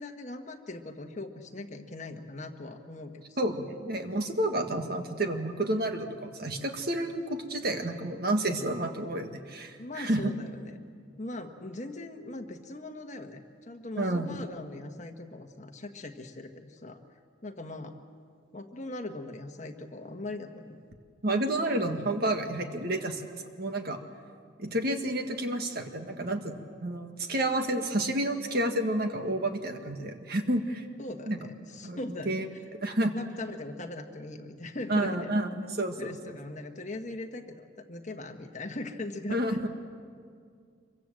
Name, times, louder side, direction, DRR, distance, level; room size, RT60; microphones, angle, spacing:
voice 1, 0.0-3.4 9.8-10.8 11.2-17.0 17.4-18.0 18.5-20.8 31.0-32.3 33.1-35.3 36.0-39.6, left 2 dB, 35° left, 5 dB, 1.4 m, -40 dB
voice 2, 3.4-10.3 14.0-14.3 21.2-24.0 24.6-30.9 31.3-31.4 31.8-32.0 32.2-32.5 32.8-33.1 34.9-36.1 39.3-39.7, right 1 dB, 50° right, 5 dB, 1.7 m, -30 dB
26.0 x 23.5 x 7.7 m, 2.2 s
head